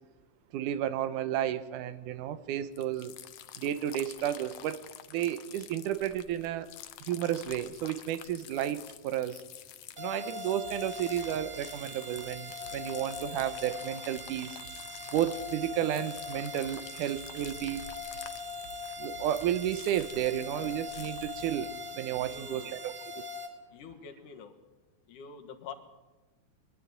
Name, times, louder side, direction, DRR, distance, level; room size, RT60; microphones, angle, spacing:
voice 1, 0.5-3.1 3.6-4.8 5.1-6.7 7.0-9.4 10.0-14.6 15.1-17.8 19.0-23.3, right 11 dB, 85° right, 13 dB, 2.4 m, -32 dB
sound 1, 2.7-21.7, left 11 dB, 70° left, 1.6 m, -49 dB
sound 2, 10.0-23.5, left 2 dB, 30° right, 2.0 m, -41 dB
sound 3, 10.6-22.6, right 5 dB, 60° right, 4.4 m, -55 dB
voice 2, 22.1-22.8 23.7-24.6 25.1-25.7, left 6 dB, 90° left, 5 dB, 3.1 m, -46 dB
22.5 x 12.5 x 9.2 m, 1.2 s
omnidirectional pair, 3.5 m